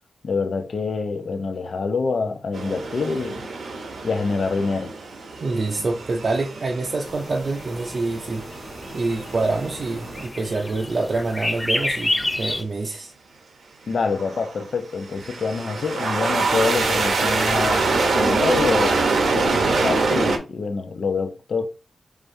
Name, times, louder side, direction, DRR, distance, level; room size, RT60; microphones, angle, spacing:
voice 1, 0.2-3.4 4.0-4.9 13.9-21.7, left 4 dB, 60° left, 0.7 m, -26 dB
sound 1, 2.5-10.3 14.1-14.6 15.1-20.4, right 3 dB, 80° right, 0.9 m, -25 dB
voice 2, 5.4-8.5 8.9-13.1, right 3 dB, 40° right, 0.6 m, -26 dB
sound 2, 7.0-12.6, left 1 dB, 15° left, 0.4 m, -30 dB
4.9 x 3.4 x 2.7 m
wide cardioid pair, 135°, 0 cm